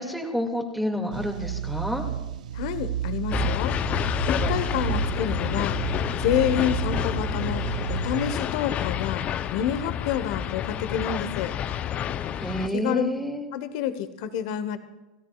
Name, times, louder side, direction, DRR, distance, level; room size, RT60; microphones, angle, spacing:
voice 1, 0.0-2.0 12.4-13.4, equal, ahead, 1 dB, 2.1 m, -29 dB
sound 1, 1.1-8.3, right 10 dB, 80° right, 0.5 m, -32 dB
voice 2, 2.5-3.8 4.2-5.8 6.2-7.6 7.9-9.2 9.5-11.5 12.7-13.1 13.5-14.8, left 9 dB, 60° left, 11 dB, 1.1 m, -28 dB
sound 2, 3.3-12.7, left 10 dB, 35° left, 0.6 m, -29 dB
29.0 x 13.5 x 2.4 m, 1.0 s
hypercardioid pair, 105°, 4 cm